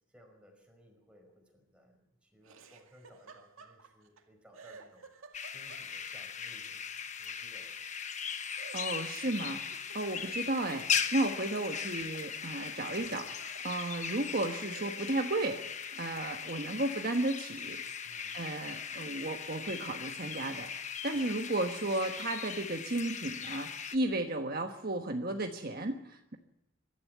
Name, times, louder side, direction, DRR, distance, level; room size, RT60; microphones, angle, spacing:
voice 1, 0.1-5.1 5.5-7.9 10.2-10.4 13.1-13.3 13.7-13.9 18.0-18.4 21.1-21.4, equal, 5° right, 1 dB, 5.3 m, -60 dB
Laughter, 2.4-4.2 4.5-6.2 8.6-11.7 12.0-13.7 14.3-14.4 14.7-16.0, right 4 dB, 85° right, 2.2 m, -55 dB
sound 1, 5.3-24.0, left 7 dB, 35° left, 1.1 m, -39 dB
voice 2, 8.7-15.6 15.9-17.8 18.3-26.4, right 2 dB, 45° right, 4 dB, 1.3 m, -34 dB
23.5 x 13.0 x 9.3 m, 0.87 s
head